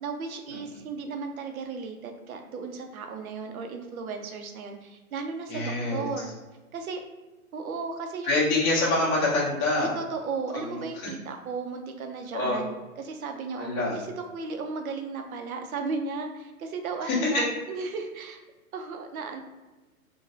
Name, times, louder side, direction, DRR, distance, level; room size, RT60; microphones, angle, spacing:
voice 1, 0.0-6.3 6.7-7.0 7.5-8.4 9.8-18.4 18.7-19.4, right 4 dB, 75° right, 5 dB, 0.6 m, -35 dB
voice 2, 5.5-6.0 8.2-9.9 10.5-11.1 12.3-12.6 13.6-14.0 17.1-17.4, left 2 dB, 30° left, -7 dB, 0.9 m, -26 dB
3.0 x 2.2 x 2.5 m, 1.2 s
hypercardioid pair, 140°, 43 cm